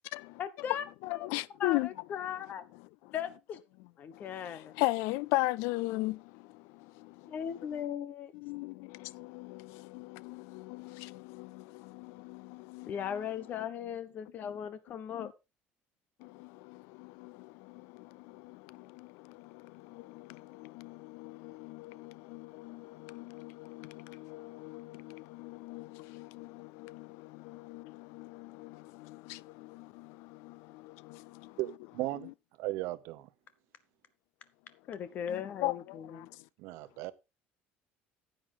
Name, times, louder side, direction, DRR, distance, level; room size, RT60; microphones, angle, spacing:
voice 1, 0.4-0.8 1.1-1.3 1.6-2.6 3.1-3.6 4.0-4.7 7.2-8.3 12.9-15.3 34.9-36.3, left 9 dB, 40° left, 1.0 m, -38 dB
voice 2, 1.0-1.9 4.1-7.3 8.4-12.9 15.1-15.3 16.2-31.6 35.3-36.3, left 20 dB, 85° left, 0.4 m, -39 dB
voice 3, 31.6-32.3 32.6-33.3 36.6-37.1, right 18 dB, 75° right, 0.9 m, -36 dB
10.0 x 8.9 x 3.8 m
cardioid pair, 165°, 4 cm